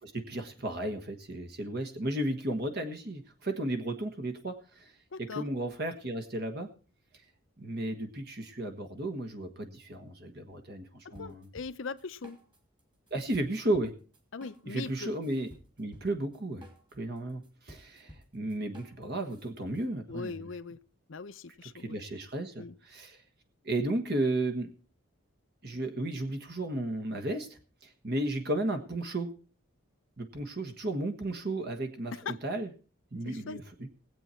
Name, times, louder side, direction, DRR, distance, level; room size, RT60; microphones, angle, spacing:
voice 1, 0.0-4.9 5.2-6.7 7.6-11.5 13.1-13.9 14.7-15.5 15.8-16.6 16.9-20.5 21.6-23.2 23.6-24.7 25.6-29.3 30.2-32.7 33.1-33.9, right 1 dB, 50° right, 1.4 m, -34 dB
voice 2, 5.1-5.4 11.0-12.4 14.3-15.1 20.1-20.8 21.1-22.0 22.6-22.7 32.2-32.4 33.2-33.6, left 4 dB, 65° left, 0.7 m, -40 dB
sound 1, 11.1-12.8 13.1-19.9, equal, 20° right, 2.4 m, -54 dB
19.5 x 8.3 x 4.4 m
head